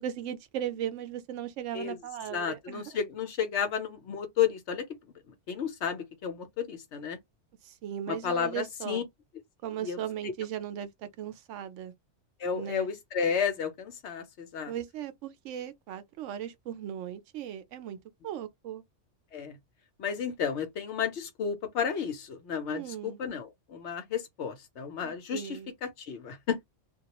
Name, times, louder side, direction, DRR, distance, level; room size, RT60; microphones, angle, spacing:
voice 1, 0.0-2.8 7.6-9.0 9.6-11.9 12.5-12.9 14.7-18.0 18.2-18.8 22.7-23.2 25.0-25.7, right 10 dB, 85° right, 0.9 m, -37 dB
voice 2, 2.3-4.9 5.3-7.2 8.1-9.0 9.8-10.3 12.4-14.7 19.3-19.6 20.0-26.7, left 7 dB, 70° left, 0.9 m, -32 dB
2.3 x 2.2 x 2.9 m
omnidirectional pair, 1.2 m